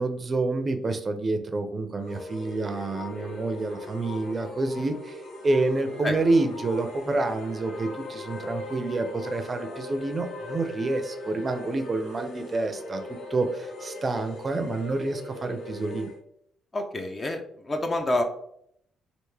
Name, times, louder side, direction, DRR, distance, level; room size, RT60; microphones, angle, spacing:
voice 1, 0.0-13.0 13.3-16.1, right 2 dB, 35° right, 7 dB, 0.5 m, -28 dB
sound 1, 2.0-16.2, left 2 dB, 80° left, 0.9 m, -39 dB
voice 2, 16.7-18.2, left 1 dB, 30° left, 5 dB, 0.5 m, -28 dB
3.4 x 2.5 x 3.2 m, 0.70 s
cardioid pair, 90°, 0 cm